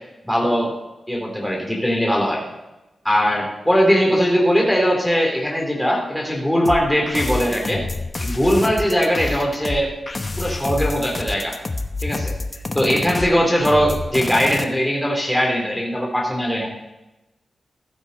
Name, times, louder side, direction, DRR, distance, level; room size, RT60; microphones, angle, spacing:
voice 1, 0.2-0.7 1.1-2.4 3.0-7.8 8.2-9.9 10.4-11.6 12.0-12.3 12.7-16.7, equal, 5° left, -1 dB, 2.9 m, -20 dB
sound 1, 6.7-14.6, left 2 dB, 30° left, 1.1 m, -27 dB
14.5 x 12.5 x 4.0 m, 1.0 s
wide cardioid pair, 95°, 0 cm